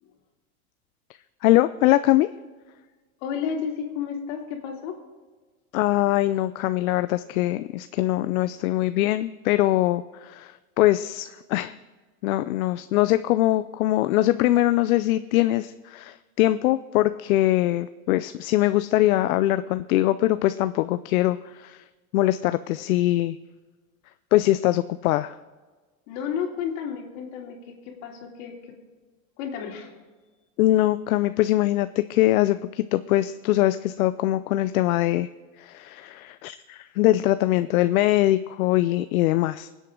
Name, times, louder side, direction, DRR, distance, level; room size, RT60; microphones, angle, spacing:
voice 1, 1.4-2.3 5.7-11.7 12.2-21.8 22.1-23.4 24.3-25.4 30.6-35.3 35.6-39.7, left 15 dB, 80° left, 13 dB, 0.6 m, -22 dB
voice 2, 3.2-5.0 26.1-28.5 29.4-29.9, left 7 dB, 60° left, 1 dB, 3.0 m, -32 dB
21.5 x 8.2 x 3.7 m, 1.3 s
supercardioid pair, 130°, 42 cm